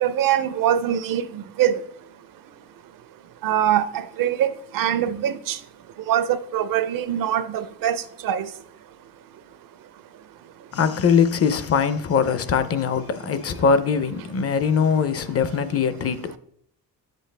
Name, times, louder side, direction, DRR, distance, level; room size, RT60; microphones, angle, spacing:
voice 1, 0.0-1.8 3.4-5.6 6.1-8.0 8.2-8.5, right 10 dB, 65° right, 0.6 m, -23 dB
voice 2, 10.7-16.4, left 6 dB, 40° left, 0.5 m, -21 dB
10.5 x 7.7 x 3.3 m
cardioid pair, 180°, 36 cm